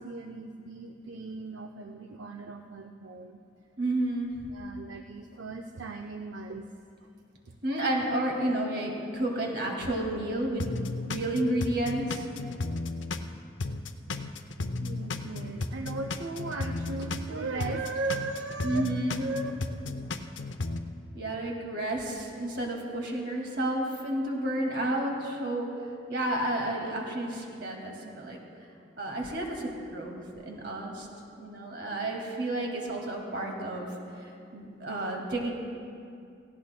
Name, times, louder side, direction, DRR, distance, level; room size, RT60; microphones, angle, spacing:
voice 1, 0.0-3.4 4.5-6.7 7.5-7.6 8.5-8.6 10.1-10.2 14.8-19.5, right 3 dB, 80° right, 4 dB, 0.5 m, -37 dB
voice 2, 3.8-4.3 7.6-12.2 18.6-19.2 21.1-25.7 26.1-28.4 29.0-31.1 31.4-33.9 34.2-35.5, right 1 dB, 60° right, 0 dB, 2.1 m, -31 dB
sound 1, 10.6-13.3 13.6-17.3 17.6-20.8, left 3 dB, 80° left, 0.6 m, -34 dB
18.0 x 16.5 x 2.2 m, 2.5 s
head